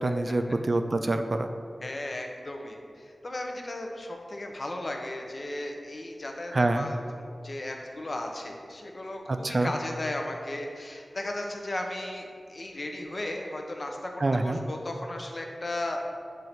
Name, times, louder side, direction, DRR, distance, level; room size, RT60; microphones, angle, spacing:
voice 1, 0.0-1.5 6.5-6.9 9.3-9.7 14.2-14.6, right 2 dB, 50° right, 7 dB, 0.3 m, -26 dB
voice 2, 1.8-16.0, left 1 dB, 45° left, 2 dB, 0.6 m, -36 dB
7.9 x 2.7 x 4.4 m, 2.4 s
wide cardioid pair, 80°, 0 cm